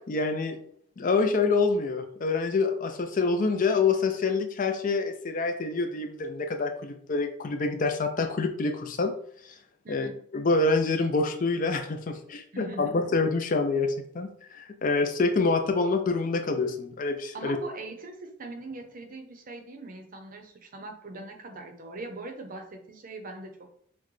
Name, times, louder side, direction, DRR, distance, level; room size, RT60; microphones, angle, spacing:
voice 1, 0.1-0.6 1.0-9.1 9.4-9.6 9.9-10.1 10.3-17.6, left 3 dB, 40° left, 7 dB, 0.4 m, -26 dB
voice 2, 9.8-10.2 12.5-12.9 17.3-23.7, right 2 dB, 40° right, 4 dB, 0.7 m, -41 dB
5.8 x 2.2 x 3.1 m, 0.64 s
head